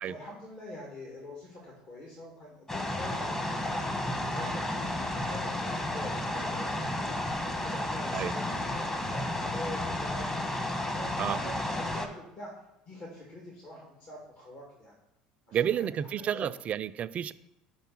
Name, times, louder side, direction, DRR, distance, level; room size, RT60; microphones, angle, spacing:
voice 1, 0.0-4.8 5.1-10.6 10.9-12.5 12.9-14.9 15.5-15.9 16.3-16.5, left 1 dB, 55° left, -3 dB, 2.1 m, -45 dB
sound 1, 2.7-12.1, left 1 dB, 15° left, 1.1 m, -32 dB
voice 2, 15.5-17.3, right 9 dB, 45° right, 14 dB, 0.3 m, -30 dB
5.4 x 4.6 x 5.9 m, 0.90 s
hypercardioid pair, 70°, 3 cm